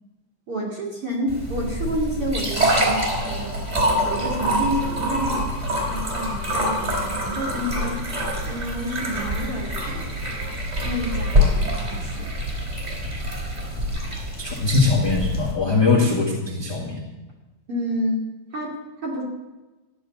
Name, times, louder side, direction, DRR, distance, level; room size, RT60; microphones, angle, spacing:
voice 1, 0.5-3.6 4.0-5.5 5.9-8.0 8.5-10.0 10.8-12.3 17.7-18.2 18.5-18.7 19.0-19.2, equal, 35° right, -2 dB, 2.7 m, -29 dB
sound 1, 1.3-15.5, equal, 15° right, 3.5 m, -25 dB
voice 2, 14.4-17.0, left 4 dB, 45° left, -3 dB, 1.4 m, -21 dB
15.0 x 7.1 x 9.6 m, 1.1 s
omnidirectional pair, 5.5 m